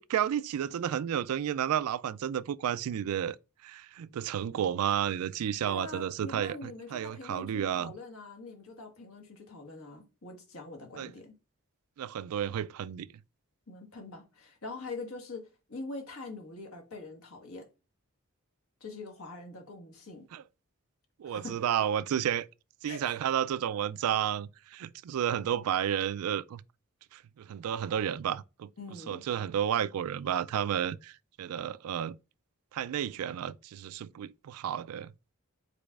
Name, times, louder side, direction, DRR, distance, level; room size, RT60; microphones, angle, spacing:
voice 1, 0.0-3.4 3.6-7.9 11.0-11.1 12.0-13.1 20.3-20.4 21.2-22.5 22.8-26.6 27.1-28.7 29.1-31.1 31.4-32.2 32.7-35.1, right 9 dB, 80° right, 0.3 m, -31 dB
voice 2, 5.7-11.3 13.7-17.7 18.8-20.3 21.2-21.6 22.9-23.0 28.8-29.2, left 2 dB, 75° left, 1.6 m, -44 dB
5.0 x 4.2 x 2.4 m
head